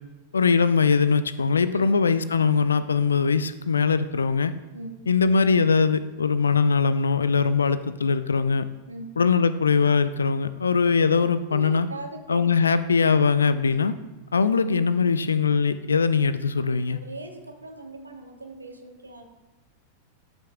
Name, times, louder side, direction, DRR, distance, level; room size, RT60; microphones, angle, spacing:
voice 1, 0.3-4.5 5.1-8.7 9.2-11.9 12.3-13.9 14.3-17.0, left 5 dB, 75° left, 14 dB, 0.4 m, -21 dB
voice 2, 11.5-12.4 13.7-13.8 17.0-19.2, right 2 dB, 80° right, 4 dB, 1.0 m, -39 dB
11.5 x 6.0 x 2.3 m, 1.1 s
figure-of-eight pair, 90°, 0 cm